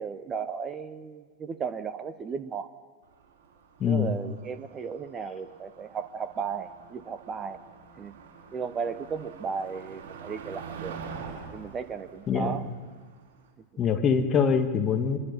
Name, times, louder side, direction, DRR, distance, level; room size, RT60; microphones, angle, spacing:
voice 1, 0.0-2.7 3.8-7.6 8.0-8.1 8.5-11.0 11.5-12.6, right 6 dB, 25° right, 13 dB, 1.0 m, -35 dB
Motor vehicle (road), 3.1-13.5, right 5 dB, 55° right, 5.7 m, -45 dB
voice 2, 3.8-4.2 12.3-12.6 13.8-15.2, left 6 dB, 25° left, 5 dB, 2.0 m, -24 dB
24.0 x 23.0 x 5.6 m, 1.5 s
figure-of-eight pair, 90°, 0 cm